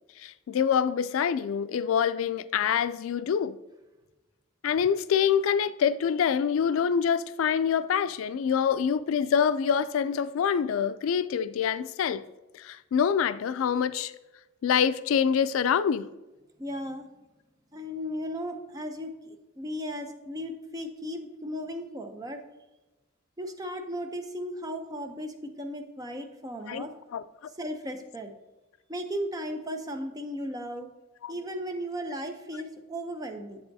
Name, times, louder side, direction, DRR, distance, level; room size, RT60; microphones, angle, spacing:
voice 1, 0.2-3.6 4.6-12.3 12.5-14.1 14.6-16.1 26.7-26.9 27.1-27.2 31.2-31.3, left 7 dB, 85° left, 0.3 m, -26 dB
voice 2, 16.6-17.1 17.7-22.4 23.4-26.9 27.6-28.3 28.9-30.9 31.3-33.6, equal, 20° right, 0.6 m, -36 dB
7.8 x 6.8 x 2.7 m
head